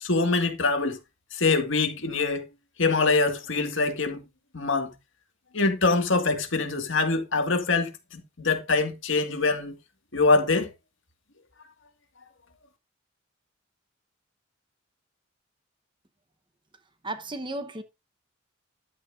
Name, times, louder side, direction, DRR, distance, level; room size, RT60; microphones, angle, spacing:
voice 1, 0.0-1.0 1.4-2.4 2.8-4.2 4.5-4.9 5.5-7.9 8.4-9.7 10.1-10.7, left 3 dB, 70° left, 2.0 m, -24 dB
voice 2, 17.0-17.8, right 2 dB, 25° right, 1.0 m, -34 dB
11.5 x 8.6 x 2.6 m
head